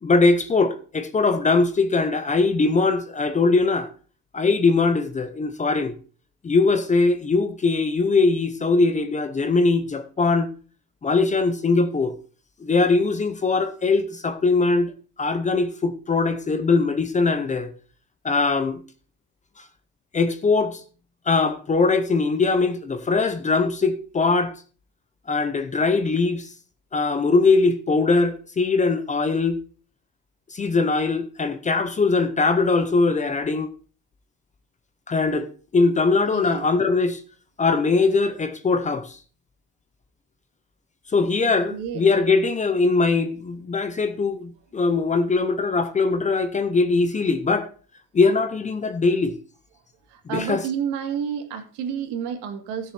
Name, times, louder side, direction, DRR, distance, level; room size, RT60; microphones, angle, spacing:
voice 1, 0.0-3.9 4.3-5.9 6.4-10.5 11.0-12.1 12.6-14.9 15.2-17.7 18.2-18.8 19.6-19.7 20.1-20.8 21.3-24.5 25.3-26.5 26.9-29.6 30.5-33.7 35.1-37.2 37.6-39.2 41.1-47.7 48.1-49.4 50.3-50.6, left 3 dB, 20° left, 0.7 m, -21 dB
voice 2, 36.3-36.7 41.7-42.1 50.1-52.9, right 7 dB, 80° right, 2.6 m, -30 dB
16.0 x 6.8 x 4.3 m
cardioid pair, 160°, 40 cm